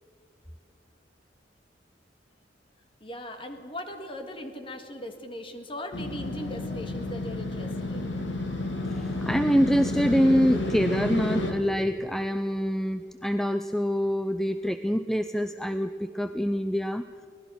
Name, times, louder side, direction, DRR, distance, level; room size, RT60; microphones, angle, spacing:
voice 1, 3.0-8.1, left 1 dB, 30° left, 6 dB, 1.8 m, -39 dB
Motorcycle, 5.9-11.5, left 2 dB, 80° left, 2.6 m, -31 dB
voice 2, 8.9-17.1, equal, ahead, 9 dB, 0.4 m, -25 dB
24.5 x 18.5 x 6.3 m, 2.4 s
head